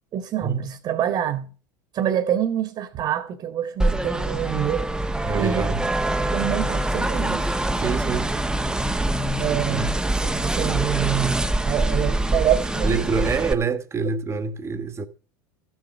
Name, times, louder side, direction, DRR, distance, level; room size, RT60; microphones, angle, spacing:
voice 1, 0.1-1.5 1.9-4.9 5.3-5.7 6.3-7.5 9.4-13.0, right 10 dB, 45° right, 1.7 m, -26 dB
sound 1, 3.8-13.5, right 1 dB, 5° right, 1.2 m, -24 dB
voice 2, 5.2-5.8 7.8-8.3 9.5-9.9 12.8-15.1, right 4 dB, 25° right, 1.6 m, -26 dB
14.0 x 7.6 x 6.4 m
hypercardioid pair, 85°, 11 cm